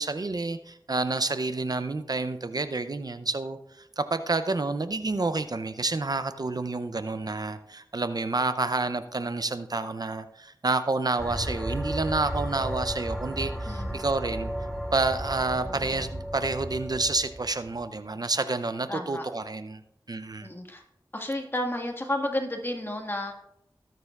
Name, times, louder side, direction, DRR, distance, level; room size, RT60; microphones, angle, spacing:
voice 1, 0.0-14.5 14.9-19.8 20.1-20.5, right 3 dB, 55° right, 11 dB, 0.5 m, -29 dB
sound 1, 11.2-17.8, right 1 dB, ahead, 2.0 m, -34 dB
voice 2, 18.9-19.3 20.4-20.8 21.1-23.4, left 1 dB, 30° left, 2 dB, 1.6 m, -31 dB
19.5 x 6.7 x 2.4 m, 0.80 s
wide cardioid pair, 45°, 8 cm